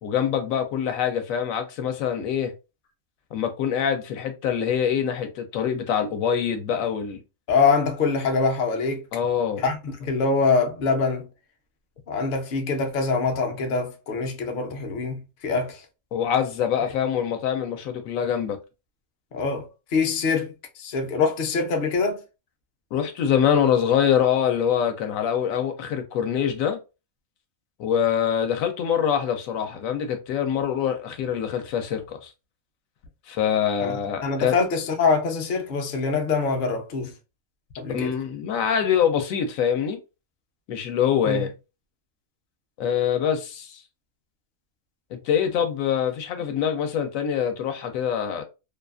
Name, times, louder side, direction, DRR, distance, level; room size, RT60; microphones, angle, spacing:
voice 1, 0.0-2.5 3.3-7.2 9.1-9.6 16.1-18.6 22.9-26.8 27.8-32.3 33.3-34.6 37.9-40.0 40.7-41.5 42.8-43.8 45.1-48.4, left 8 dB, 75° left, 1.0 m, -24 dB
voice 2, 7.5-9.0 9.6-11.3 12.1-15.8 19.3-22.2 33.8-37.1 37.8-38.1 41.3-41.5, left 4 dB, 55° left, 0.6 m, -24 dB
2.6 x 2.3 x 2.3 m
omnidirectional pair, 1.4 m